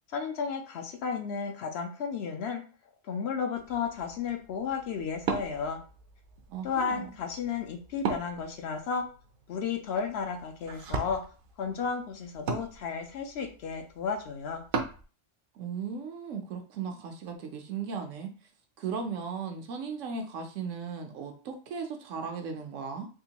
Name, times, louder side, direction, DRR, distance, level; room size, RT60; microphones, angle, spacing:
voice 1, 0.1-2.6 3.1-5.8 6.6-9.1 9.5-11.2 11.6-14.6, left 6 dB, 65° left, 4 dB, 0.7 m, -33 dB
Wood, 3.5-15.0, right 5 dB, 60° right, 0.6 m, -39 dB
voice 2, 6.5-7.1 15.5-18.3 18.8-23.1, right 5 dB, 85° right, 4 dB, 1.0 m, -36 dB
3.7 x 2.4 x 2.8 m, 0.37 s
omnidirectional pair, 1.3 m